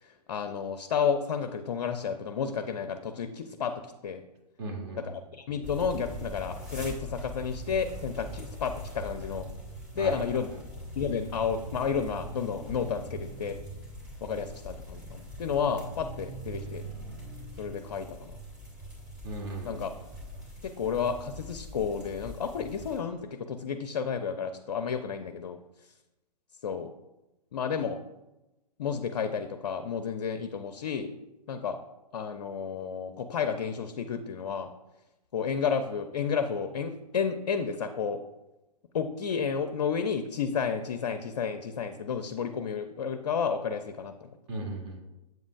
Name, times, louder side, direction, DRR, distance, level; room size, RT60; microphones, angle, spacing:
voice 1, 0.0-3.7 4.0-4.2 5.0-9.5 10.0-10.5 11.0-13.6 14.2-16.9 17.6-18.3 19.6-19.9 20.6-25.6 26.6-26.9 27.5-28.0 28.8-31.1 31.5-31.8 32.1-34.7 35.3-38.2 38.9-44.3, left 6 dB, 50° left, 9 dB, 0.5 m, -31 dB
voice 2, 4.6-5.2 10.0-10.2 19.2-19.8 44.5-45.0, right 2 dB, 40° right, 1 dB, 1.5 m, -37 dB
sound 1, 5.6-23.0, equal, 20° right, 2.4 m, -42 dB
7.8 x 7.2 x 2.4 m, 1.0 s
figure-of-eight pair, 115°, 21 cm